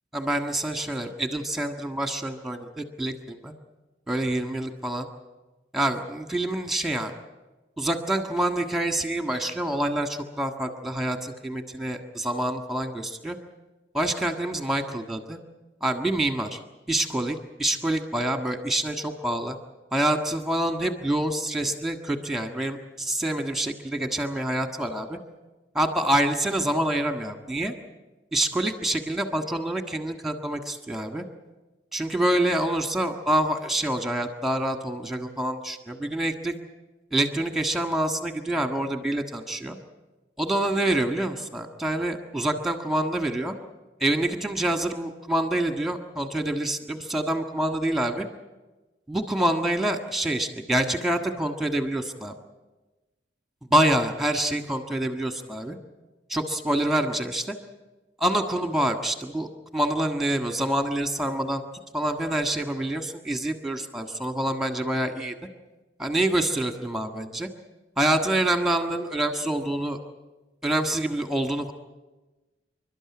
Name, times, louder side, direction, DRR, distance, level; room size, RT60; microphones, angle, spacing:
voice 1, 0.1-3.5 4.1-5.1 5.7-7.1 7.8-13.4 13.9-15.4 15.8-16.6 16.9-19.6 19.9-25.2 25.7-27.7 28.3-31.2 31.9-36.5 37.1-39.8 40.4-43.5 44.0-48.2 49.1-52.3 53.7-55.8 56.3-57.5 58.2-61.6 61.9-65.3 66.0-67.5 68.0-70.0 70.6-71.7, right 1 dB, ahead, 6 dB, 1.6 m, -26 dB
28.0 x 12.5 x 9.7 m, 1.2 s
head